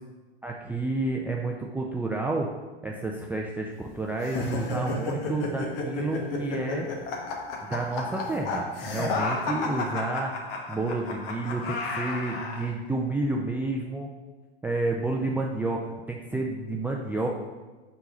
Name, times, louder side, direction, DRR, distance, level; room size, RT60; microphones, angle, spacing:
voice 1, 0.4-2.5 2.8-6.9 7.6-10.3 10.7-14.1 14.6-15.8 16.1-17.3, right 2 dB, 5° right, -1 dB, 0.3 m, -30 dB
sound 1, 4.2-12.7, left 3 dB, 65° left, 1.2 m, -32 dB
4.6 x 4.0 x 5.5 m, 1.3 s
hypercardioid pair, 105°, 31 cm